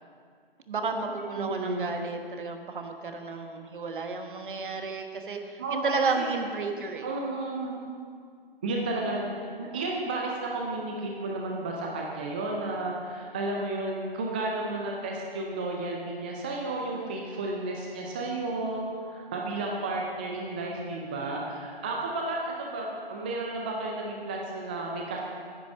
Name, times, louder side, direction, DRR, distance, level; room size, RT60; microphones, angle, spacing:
voice 1, 0.7-7.1, right 4 dB, 60° right, 5 dB, 1.3 m, -32 dB
voice 2, 1.3-1.9 5.6-6.3 7.0-7.8 8.6-25.2, right 2 dB, 10° right, -2 dB, 0.4 m, -32 dB
9.8 x 9.3 x 6.0 m, 2.1 s
figure-of-eight pair, 140°, 30 cm